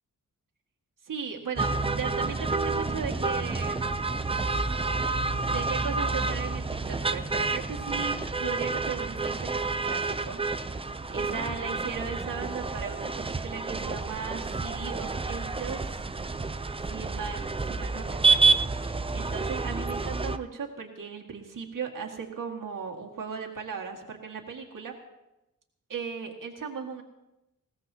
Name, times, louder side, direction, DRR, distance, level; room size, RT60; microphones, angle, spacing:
voice 1, 1.1-3.9 5.3-10.4 11.1-16.0 16.8-18.6 19.1-24.9 25.9-27.0, right 6 dB, 65° right, 1 dB, 2.0 m, -37 dB
sound 1, 1.6-20.4, right 4 dB, 15° right, 0.4 m, -29 dB
20.5 x 17.5 x 2.8 m, 0.93 s
wide cardioid pair, 150°, 34 cm